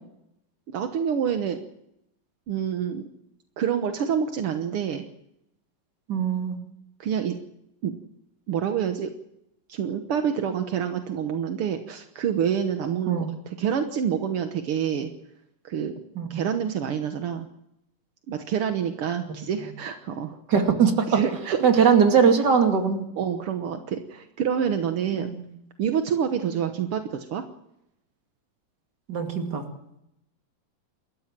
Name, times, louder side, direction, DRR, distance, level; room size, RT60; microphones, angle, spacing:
voice 1, 0.7-1.6 2.5-3.1 3.6-5.0 7.0-7.4 7.8-7.9 8.5-9.1 9.7-15.1 15.6-15.9 16.3-17.5 18.3-20.4 21.1-21.8 23.2-25.3 25.8-27.5, right 8 dB, 65° right, 7 dB, 1.4 m, -27 dB
voice 2, 6.1-6.6 13.1-13.3 16.2-16.5 19.6-19.7 20.5-21.2 21.6-23.1 25.1-25.5 29.1-29.6, right 6 dB, 35° right, 4 dB, 2.6 m, -21 dB
28.5 x 14.0 x 7.5 m, 0.82 s
omnidirectional pair, 4.0 m